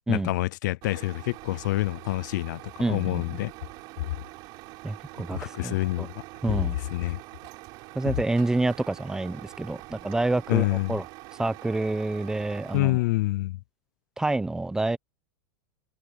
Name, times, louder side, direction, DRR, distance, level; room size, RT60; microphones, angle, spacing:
voice 1, 0.0-3.5 4.0-4.1 5.3-6.2 6.5-7.2 8.0-8.1 10.5-11.0 12.7-13.6, left 18 dB, 70° left, 0.6 m, -27 dB
Truck, 0.8-12.8, right 22 dB, 45° right, 4.5 m, -45 dB
voice 2, 2.8-3.4 4.8-6.1 6.4-6.8 7.9-11.0 11.4-13.0 14.2-15.0, right 2 dB, 5° right, 0.8 m, -28 dB
supercardioid pair, 155°, 10 cm